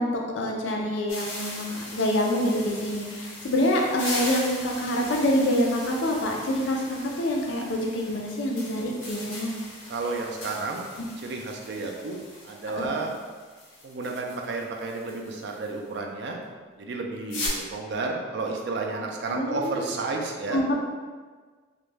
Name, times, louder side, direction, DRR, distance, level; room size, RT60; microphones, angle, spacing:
voice 1, 0.0-9.5 11.0-11.1 12.8-12.9 18.9-19.0 19.3-19.9 20.5-20.7, left 1 dB, 65° left, 0 dB, 0.4 m, -26 dB
sound 1, 1.1-15.8 17.3-17.5, left 2 dB, 85° left, 0.8 m, -39 dB
voice 2, 9.9-10.9 11.2-13.1 13.8-16.4 16.8-20.6, right 3 dB, 55° right, 1 dB, 0.3 m, -32 dB
2.3 x 2.1 x 3.2 m, 1.5 s
head